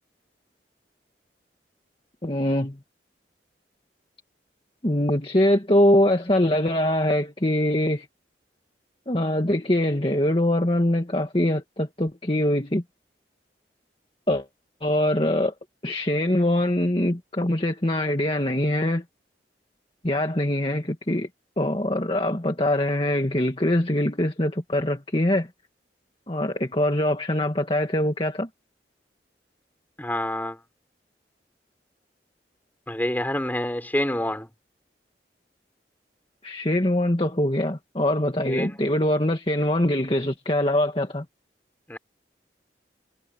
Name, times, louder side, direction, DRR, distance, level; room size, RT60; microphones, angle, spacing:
voice 1, 2.2-2.8 4.8-8.1 9.1-12.8 14.3-14.5 14.8-15.5 15.8-19.0 20.0-21.3 21.6-25.5 26.3-28.5 36.4-41.3, left 1 dB, 30° left, 1.9 m, -23 dB
voice 2, 30.0-30.6 32.9-34.5 38.5-38.7 41.9-42.0, left 1 dB, 10° left, 5.8 m, -27 dB
head